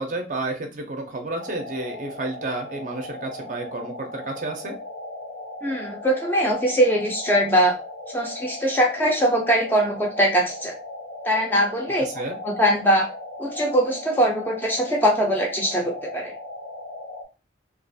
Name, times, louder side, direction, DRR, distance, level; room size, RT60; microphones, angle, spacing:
voice 1, 0.0-4.8 12.0-12.4, right 2 dB, 45° right, 4 dB, 0.5 m, -31 dB
sound 1, 1.4-17.2, left 2 dB, 75° left, 0.6 m, -37 dB
voice 2, 5.6-7.7 8.1-10.7 11.2-12.1 12.4-13.1 13.4-16.3, equal, 10° left, 0 dB, 0.5 m, -21 dB
2.4 x 2.3 x 2.6 m, 0.31 s
head